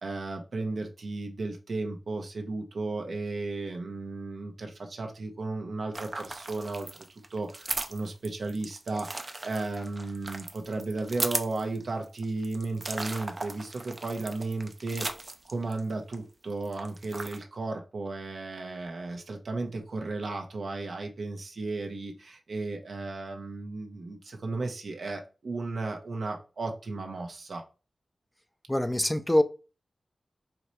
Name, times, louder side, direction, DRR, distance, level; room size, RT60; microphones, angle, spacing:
voice 1, 0.0-7.0 7.3-15.1 15.5-27.6, right 3 dB, 75° right, 1.1 m, -34 dB
sound 1, 5.9-16.2 16.5-17.4, right 2 dB, 35° right, 0.6 m, -37 dB
voice 2, 28.7-29.4, left 1 dB, 10° left, 0.6 m, -24 dB
4.8 x 2.8 x 3.1 m
wide cardioid pair, 75°, 0 cm